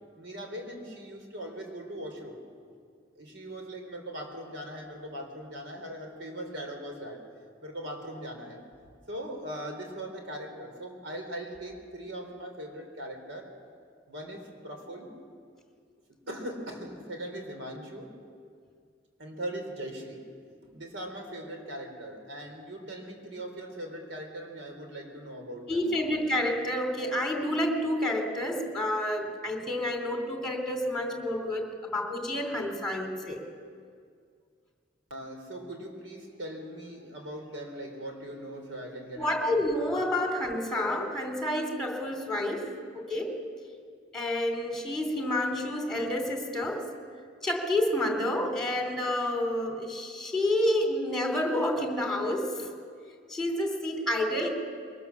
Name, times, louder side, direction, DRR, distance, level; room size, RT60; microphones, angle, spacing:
voice 1, 0.2-2.4 3.2-7.2 7.6-8.6 9.1-13.5 14.1-15.1 16.3-18.1 19.2-20.2 20.6-26.3 35.1-39.7, right 1 dB, 80° right, 3 dB, 3.9 m, -40 dB
voice 2, 25.7-33.4 39.2-43.3 44.1-46.9 47.4-52.7 53.3-54.5, left 1 dB, 5° left, 2 dB, 2.8 m, -29 dB
22.5 x 19.0 x 7.2 m, 2.1 s
head